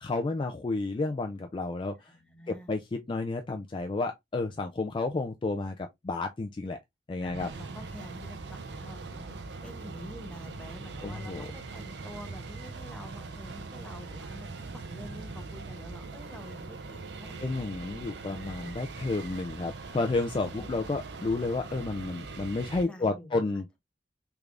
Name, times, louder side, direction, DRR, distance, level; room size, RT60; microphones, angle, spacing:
voice 1, 0.0-2.1 2.5-6.8 7.1-7.5 11.0-11.5 17.4-23.7, left 3 dB, 30° left, 0.3 m, -31 dB
voice 2, 1.8-2.7 7.2-17.9 20.6-21.0 22.8-23.4, left 1 dB, 5° left, 0.7 m, -48 dB
sound 1, 7.2-22.8, right 3 dB, 70° right, 0.6 m, -41 dB
3.5 x 3.2 x 2.4 m
head